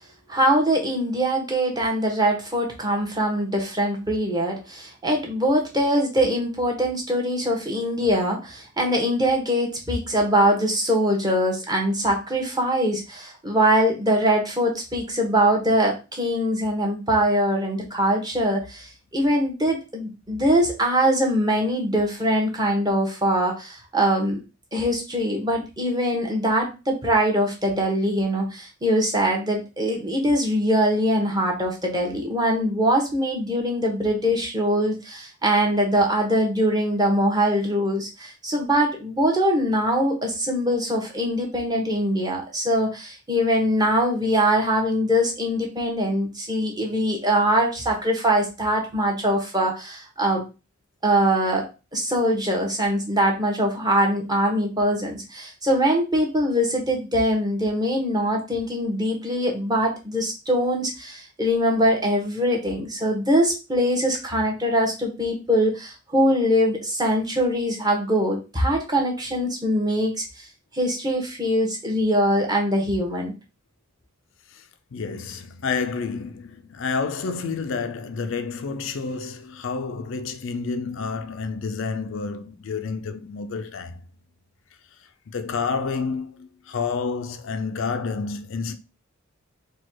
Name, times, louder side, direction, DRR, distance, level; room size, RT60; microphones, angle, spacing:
voice 1, 0.3-18.9 19.1-24.4 24.7-50.4 51.0-70.2 70.7-73.3, equal, 20° right, 1.2 m, -22 dB
voice 2, 74.9-84.0 85.3-88.7, left 5 dB, 65° left, 0.4 m, -29 dB
4.3 x 2.3 x 4.5 m
head